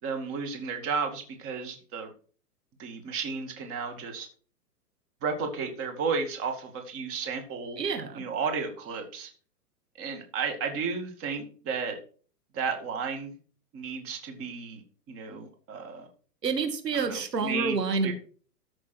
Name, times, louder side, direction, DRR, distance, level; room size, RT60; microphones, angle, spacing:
voice 1, 0.0-2.1 2.8-4.3 5.2-7.8 8.1-9.3 10.0-12.0 12.5-13.4 13.7-16.1 16.9-17.8 18.0-18.1, right 5 dB, 30° right, 3 dB, 2.4 m, -33 dB
voice 2, 7.8-8.2 16.4-18.1, right 4 dB, 90° right, 7 dB, 2.4 m, -28 dB
14.0 x 6.2 x 4.5 m, 0.41 s
hypercardioid pair, 130°, 47 cm